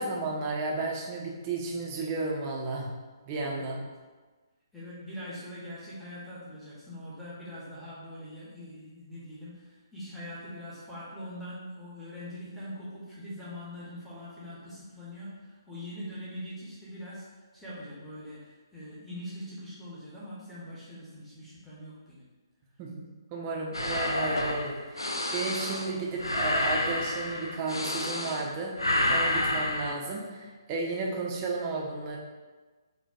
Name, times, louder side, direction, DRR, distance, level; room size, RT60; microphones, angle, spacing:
voice 1, 0.0-2.9 3.2-3.8 22.8-23.0 23.3-32.2, right 3 dB, 25° right, -1 dB, 0.5 m, -33 dB
voice 2, 4.7-17.2 17.5-22.3, equal, ahead, -11 dB, 0.8 m, -42 dB
sound 1, 23.7-28.5 28.8-29.9, left 1 dB, 80° left, 0.3 m, -29 dB
4.0 x 2.2 x 2.3 m, 1.3 s
figure-of-eight pair, 135°, 2 cm